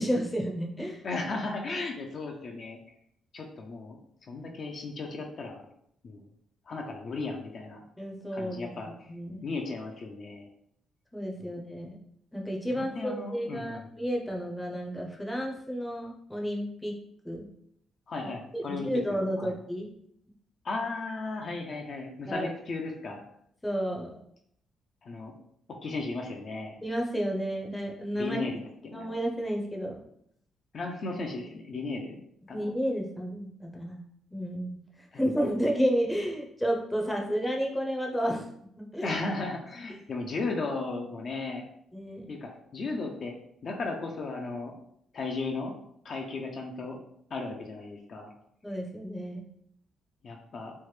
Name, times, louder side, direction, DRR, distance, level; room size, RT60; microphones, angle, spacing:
voice 1, 0.0-1.0 8.0-9.4 11.1-12.0 12.3-16.9 17.2-17.5 18.2-19.9 22.3-22.5 23.6-24.2 26.8-28.4 28.9-30.0 32.5-34.0 34.3-38.5 38.8-39.1 41.9-42.3 48.6-49.4, equal, 10° left, 0 dB, 0.6 m, -31 dB
voice 2, 1.0-2.8 3.3-4.0 4.3-5.6 6.0-6.3 6.7-7.8 8.3-9.1 9.4-10.5 11.4-11.5 12.7-13.9 18.1-19.5 20.6-23.2 25.0-25.3 25.8-26.7 28.2-29.1 30.7-32.2 32.5-32.7 35.1-35.3 39.0-41.7 42.3-43.3 43.6-44.7 45.1-45.7 46.0-47.0 47.3-48.3 50.2-50.7, left 3 dB, 50° left, 2 dB, 0.5 m, -35 dB
3.2 x 2.1 x 3.1 m, 0.72 s
cardioid pair, 90°, 0 cm